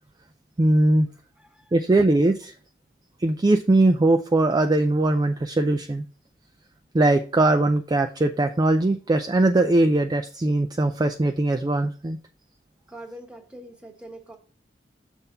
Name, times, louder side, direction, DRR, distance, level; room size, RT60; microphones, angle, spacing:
voice 1, 0.6-1.1 1.7-2.5 3.2-6.0 6.9-12.2, right 2 dB, 25° right, 7 dB, 0.4 m, -20 dB
voice 2, 1.4-1.8 12.9-14.4, right 1 dB, 5° right, 2 dB, 1.3 m, -43 dB
6.8 x 3.5 x 5.6 m, 0.39 s
head